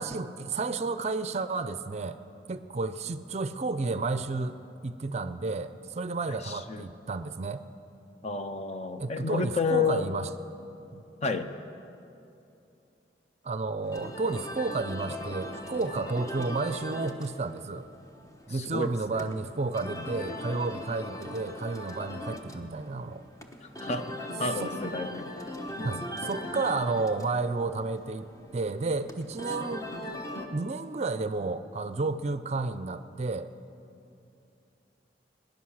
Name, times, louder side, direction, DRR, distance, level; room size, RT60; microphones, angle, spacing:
voice 1, 0.0-2.2 2.5-4.6 4.8-7.6 9.0-10.3 10.9-11.0 13.4-17.9 18.5-23.2 24.6-24.7 25.8-28.3 28.5-29.9 30.5-33.5, right 3 dB, 40° right, 12 dB, 0.5 m, -31 dB
voice 2, 6.4-6.8 8.2-10.1 11.2-11.5 18.5-19.3 19.8-20.1 23.6-25.3 25.8-26.1, left 4 dB, 35° left, 9 dB, 0.6 m, -31 dB
sound 1, 13.8-30.5, left 1 dB, 20° left, 1.0 m, -40 dB
20.5 x 10.5 x 6.4 m, 2.8 s
head